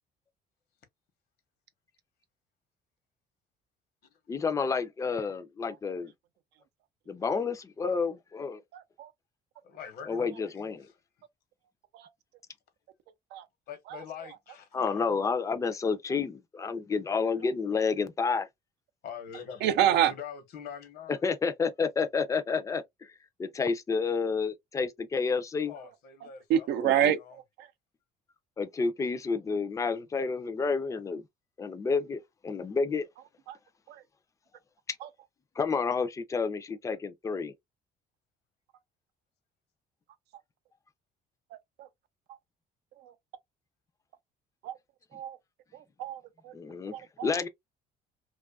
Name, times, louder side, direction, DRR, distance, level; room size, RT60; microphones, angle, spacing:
voice 1, 4.3-6.1 7.1-8.6 10.1-10.9 14.7-18.5 21.1-23.1 23.4-25.7 26.8-27.2 28.6-31.2 31.6-33.1 35.6-37.5 46.5-46.9 47.2-47.5, left 5 dB, 20° left, 0.4 m, -30 dB
voice 2, 9.6-10.9 13.7-15.0 19.0-21.2 25.7-27.4, left 7 dB, 70° left, 1.0 m, -44 dB
voice 3, 13.9-14.4 14.8-14.9 17.4-17.5 19.6-20.1 25.8-25.9 26.5-27.7 33.5-33.6 33.9-34.0 35.0-35.1 41.8-41.9 43.0-43.1 44.6-44.8 45.1-45.4 45.7-46.5 46.9-47.4, right 10 dB, 80° right, 0.5 m, -29 dB
2.5 x 2.3 x 2.3 m
cardioid pair, 110°, 17 cm